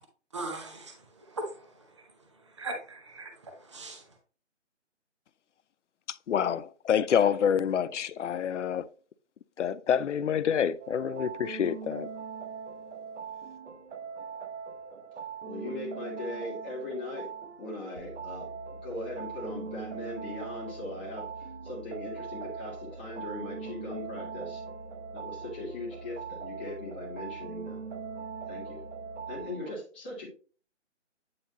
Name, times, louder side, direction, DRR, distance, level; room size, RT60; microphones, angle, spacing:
voice 1, 0.3-4.2, right 2 dB, 25° right, 0.7 m, -40 dB
voice 2, 6.3-8.9 9.6-12.1, left 8 dB, 75° left, 0.5 m, -27 dB
sound 1, 10.8-29.7, right 6 dB, 70° right, 1.0 m, -41 dB
voice 3, 15.4-17.3 17.6-24.6 25.1-27.8 28.5-28.8 29.3-30.3, left 2 dB, 10° left, 0.8 m, -39 dB
sound 2, 18.0-29.4, right 1 dB, 85° right, 3.0 m, -48 dB
8.6 x 3.9 x 2.8 m
figure-of-eight pair, 165°, 37 cm